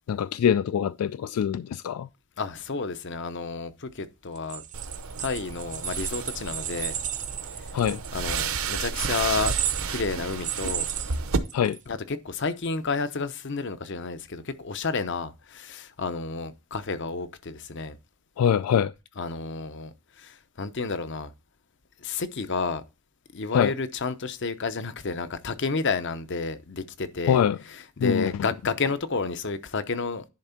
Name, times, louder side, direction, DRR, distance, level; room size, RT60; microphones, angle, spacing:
voice 1, 0.1-2.1 7.7-8.0 11.5-11.8 18.4-18.9 23.5-23.7 27.3-27.6 28.0-28.3, left 8 dB, 80° left, 0.3 m, -23 dB
voice 2, 2.4-4.6 5.2-7.0 8.1-10.9 11.9-18.0 19.2-21.3 22.0-22.8 23.3-27.4 27.7-30.2, left 4 dB, 55° left, 0.7 m, -31 dB
sound 1, 4.4-11.8, right 10 dB, 35° right, 0.5 m, -34 dB
sound 2, 4.7-11.4, right 5 dB, 70° right, 0.8 m, -32 dB
10.5 x 3.5 x 5.7 m
head